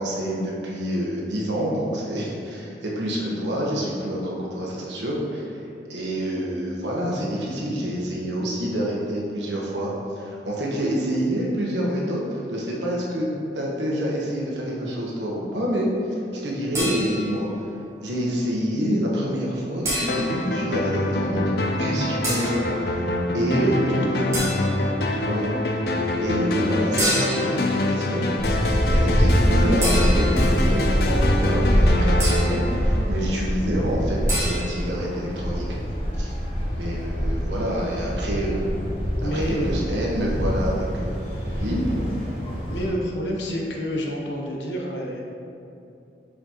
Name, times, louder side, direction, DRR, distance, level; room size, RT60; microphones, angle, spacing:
voice 1, 0.0-5.6 5.9-15.9 16.3-17.5 18.0-21.5 21.8-23.1 23.3-24.7 25.1-25.8 26.2-28.4 28.9-35.8 36.2-36.3 36.8-38.6 39.2-41.1 41.6-42.1, equal, 85° right, -3 dB, 1.2 m, -27 dB
sound 1, 16.7-17.4 19.8-20.5 22.2-22.6 24.3-24.9 27.0-27.6 29.8-30.5 32.2-32.7 34.3-34.6, right 1 dB, 15° right, 1.4 m, -27 dB
sound 2, 20.1-33.6, left 1 dB, 60° left, 0.5 m, -25 dB
voice 2, 23.5-24.4 39.2-39.9 42.7-45.2, equal, 90° left, -1 dB, 1.0 m, -28 dB
sound 3, 28.4-42.9, equal, 30° left, 1.4 m, -24 dB
6.8 x 4.9 x 3.0 m, 2.7 s
head